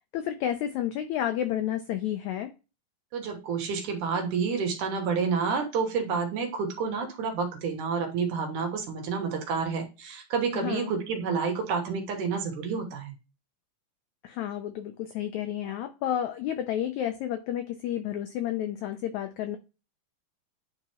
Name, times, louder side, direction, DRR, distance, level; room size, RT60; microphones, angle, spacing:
voice 1, 0.1-2.5 10.5-10.9 14.2-19.6, left 11 dB, 85° left, 1.6 m, -31 dB
voice 2, 3.1-13.1, right 5 dB, 70° right, 2.6 m, -29 dB
10.0 x 4.0 x 3.0 m
omnidirectional pair, 3.9 m